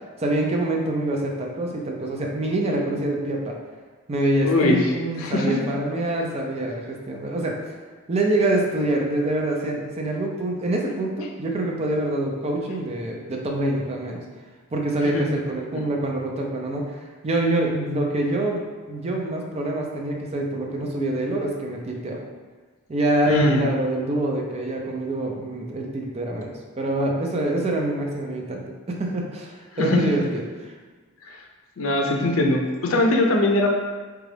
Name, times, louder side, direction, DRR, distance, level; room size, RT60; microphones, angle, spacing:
voice 1, 0.2-3.6 4.1-7.6 8.1-14.2 14.7-22.2 22.9-30.4, right 1 dB, 30° right, 0 dB, 0.5 m, -25 dB
voice 2, 4.4-4.8 5.2-5.5 15.0-15.3 23.3-23.6 29.8-30.3 31.8-33.7, left 2 dB, 80° left, 2 dB, 0.5 m, -21 dB
3.9 x 2.3 x 3.2 m, 1.4 s
head